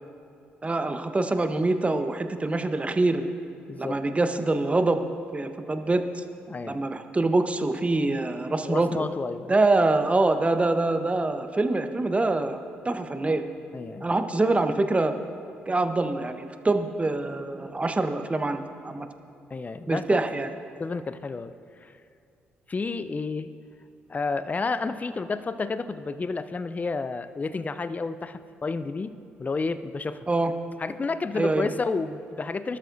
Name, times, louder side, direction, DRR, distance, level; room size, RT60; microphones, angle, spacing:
voice 1, 0.6-3.2 3.8-5.0 5.3-6.2 6.7-9.1 9.5-12.6 12.8-13.4 14.0-15.1 15.7-19.1 19.9-20.5 30.3-30.5 31.3-31.7, right 2 dB, 25° right, 8 dB, 1.0 m, -25 dB
voice 2, 6.5-6.8 8.6-9.5 13.7-14.0 19.5-20.2 20.8-21.5 21.8-21.9 22.7-23.5 24.1-30.2 30.8-32.8, left 4 dB, 30° left, 12 dB, 0.6 m, -31 dB
22.5 x 12.5 x 2.7 m, 2.4 s
hypercardioid pair, 45°, 5 cm